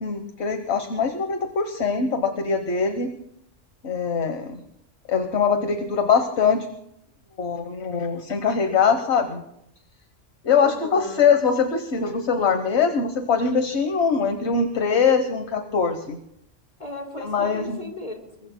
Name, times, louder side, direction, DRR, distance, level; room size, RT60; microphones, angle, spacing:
voice 1, 0.0-3.1 3.8-4.6 5.1-6.7 7.4-9.4 10.4-16.2 17.2-17.8, left 5 dB, 60° left, 7 dB, 1.4 m, -22 dB
voice 2, 10.6-11.3 16.8-18.5, left 1 dB, 35° left, -1 dB, 4.0 m, -37 dB
26.5 x 23.5 x 2.2 m, 0.78 s
omnidirectional pair, 1.3 m